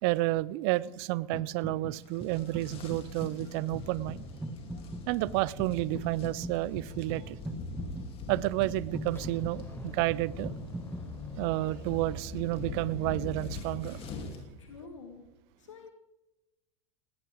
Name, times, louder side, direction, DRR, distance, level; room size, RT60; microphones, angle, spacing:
voice 1, 0.0-4.2 5.1-7.4 8.3-10.5 11.4-14.3, right 18 dB, 55° right, 22 dB, 0.6 m, -31 dB
sound 1, 1.3-11.1, right 1 dB, 5° right, 1.7 m, -41 dB
sound 2, 2.0-14.4, left 3 dB, 35° left, 3.1 m, -43 dB
sound 3, 9.0-14.4, left 2 dB, 15° left, 4.2 m, -47 dB
voice 2, 14.6-15.2 15.6-15.9, left 4 dB, 80° left, 5 dB, 1.7 m, -47 dB
19.5 x 16.5 x 3.7 m, 1.0 s
hypercardioid pair, 85°, 16 cm